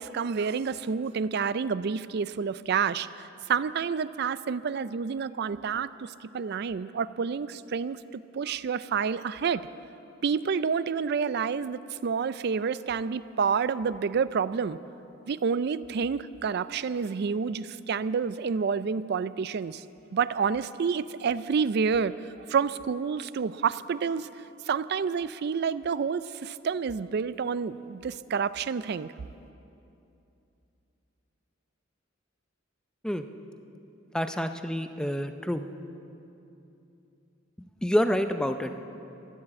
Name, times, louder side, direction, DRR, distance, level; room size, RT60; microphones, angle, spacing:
voice 1, 0.0-9.7 10.2-14.8 15.3-19.8 20.1-22.1 22.5-24.3 24.7-29.1, right 6 dB, 55° right, 16 dB, 0.4 m, -29 dB
voice 2, 34.1-35.6 37.8-38.9, equal, 5° left, 8 dB, 0.5 m, -28 dB
15.0 x 11.5 x 7.6 m, 2.8 s
head